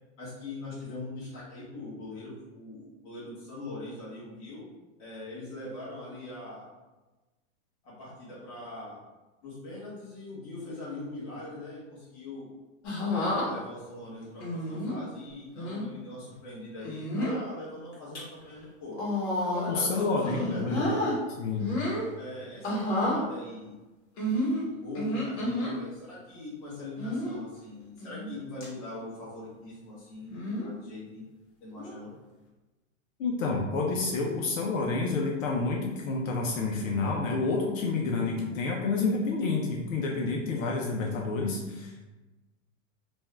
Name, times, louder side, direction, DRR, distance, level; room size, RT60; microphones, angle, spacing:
voice 1, 0.2-4.6 5.0-6.7 7.8-9.0 9.4-12.5 13.1-19.0 19.5-21.0 22.2-23.7 24.5-31.2 31.6-32.1, left 2 dB, 25° left, -9 dB, 0.9 m, -41 dB
sound 1, 12.8-13.5 14.4-15.0 15.5-15.8 16.8-17.4 17.9-18.2 18.9-19.9 20.2-21.2 21.6-22.1 22.6-23.2 24.2-25.7 27.0-27.4 28.0-28.3 28.6-28.7 30.3-30.7 31.8-32.0, left 1 dB, 50° left, 1.1 m, -30 dB
voice 2, 19.7-20.9 21.4-21.7 33.2-42.0, left 3 dB, 70° left, -1 dB, 0.6 m, -29 dB
2.6 x 2.3 x 3.2 m, 1.1 s
supercardioid pair, 175°, 41 cm